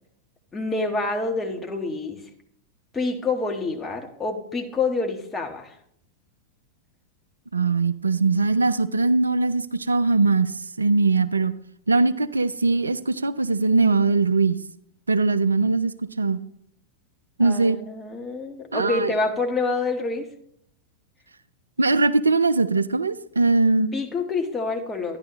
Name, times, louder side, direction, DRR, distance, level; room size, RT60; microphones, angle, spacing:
voice 1, 0.5-2.2 2.9-5.7 17.4-20.2 23.9-25.2, left 3 dB, 15° left, 2 dB, 1.5 m, -27 dB
voice 2, 7.5-11.5 11.9-14.6 15.1-16.4 17.4-17.8 18.7-19.1 21.8-23.9, right 3 dB, 75° right, 14 dB, 0.4 m, -21 dB
12.0 x 10.5 x 3.2 m, 0.71 s
figure-of-eight pair, 90°, 0 cm